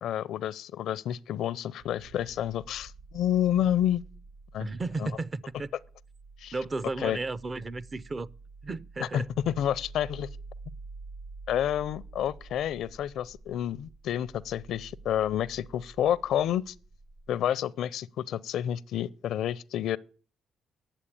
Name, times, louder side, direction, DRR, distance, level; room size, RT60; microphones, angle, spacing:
voice 1, 0.0-4.0 4.5-4.7 5.0-5.1 6.4-6.5 7.0-7.2 9.0-10.3 11.5-16.7 17.3-20.0, left 10 dB, 75° left, 0.5 m, -29 dB
sound 1, 1.8-17.5, right 3 dB, 65° right, 7.9 m, -48 dB
voice 2, 4.6-5.7 6.5-8.3 8.6-9.3, right 3 dB, 35° right, 0.5 m, -34 dB
10.0 x 7.3 x 8.6 m
cardioid pair, 90°, 0 cm